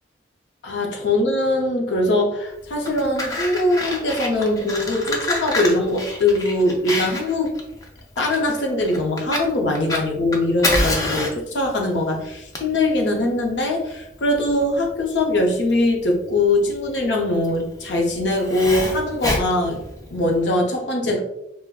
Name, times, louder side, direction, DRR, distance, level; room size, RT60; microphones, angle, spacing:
voice 1, 0.6-7.6 8.2-19.8 20.1-21.2, left 2 dB, 75° left, 1 dB, 0.6 m, -21 dB
Fire, 2.6-20.4, left 1 dB, 20° left, 0.4 m, -28 dB
3.5 x 2.1 x 2.3 m, 0.83 s
head